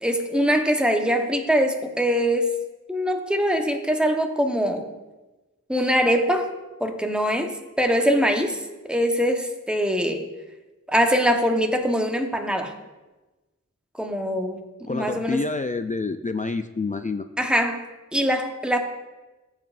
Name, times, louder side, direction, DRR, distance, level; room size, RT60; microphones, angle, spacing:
voice 1, 0.0-2.5 2.9-4.9 5.7-6.5 6.8-8.6 8.9-10.2 10.9-12.7 13.9-14.6 14.9-15.4 17.4-17.8 18.1-18.8, equal, 5° right, 3 dB, 1.0 m, -22 dB
voice 2, 14.9-17.3, left 3 dB, 25° left, 8 dB, 0.4 m, -28 dB
15.0 x 7.3 x 2.5 m, 1.1 s
wide cardioid pair, 65°, 30 cm